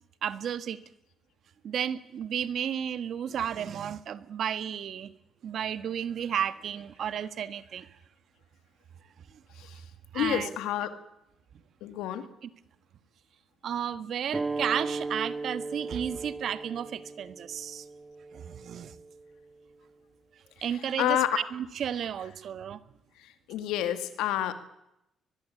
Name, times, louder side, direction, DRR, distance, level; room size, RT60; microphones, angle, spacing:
voice 1, 0.2-0.8 1.6-5.1 5.4-8.0 9.3-9.4 10.1-10.5 12.4-12.5 13.6-17.9 18.3-18.9 20.6-22.8, right 9 dB, 65° right, 14 dB, 1.4 m, -33 dB
voice 2, 10.1-10.9 11.8-12.2 20.6-21.4 23.2-24.5, left 12 dB, 85° left, 10 dB, 2.3 m, -29 dB
sound 1, 14.3-19.5, right 3 dB, 25° right, 1.8 m, -37 dB
22.5 x 21.5 x 8.4 m, 0.83 s
supercardioid pair, 70°, 0 cm